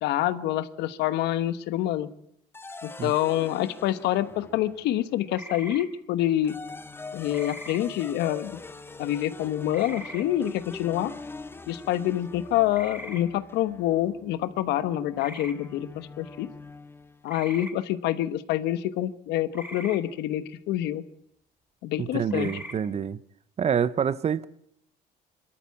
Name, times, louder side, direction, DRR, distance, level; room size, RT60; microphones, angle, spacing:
voice 1, 0.0-2.1 2.8-6.6 7.1-8.6 9.0-11.1 11.7-16.5 17.2-21.0 21.8-22.5, left 13 dB, 85° left, 1.1 m, -27 dB
sound 1, 2.5-5.1 6.2-17.3, left 3 dB, 15° left, 0.9 m, -43 dB
sound 2, 5.3-5.9 7.3-7.8 9.7-10.2 12.7-13.2 15.2-15.5 17.2-17.7 19.5-20.0 22.3-22.7, right 1 dB, 10° right, 2.6 m, -40 dB
voice 2, 22.0-23.2 23.6-24.5, right 7 dB, 40° right, 0.8 m, -27 dB
24.0 x 13.0 x 8.4 m
cardioid pair, 110°, 17 cm